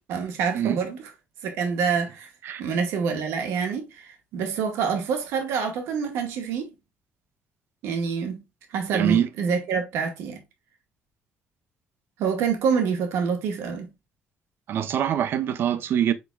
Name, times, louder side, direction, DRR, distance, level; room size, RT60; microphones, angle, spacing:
voice 1, 0.1-1.1 1.4-2.3 2.6-6.7 7.8-8.4 8.7-10.4 12.2-13.9, right 6 dB, 85° right, 1.2 m, -26 dB
voice 2, 8.9-9.3 14.7-16.1, right 10 dB, 55° right, 0.6 m, -24 dB
5.1 x 4.4 x 2.3 m
cardioid pair, 125°, 4 cm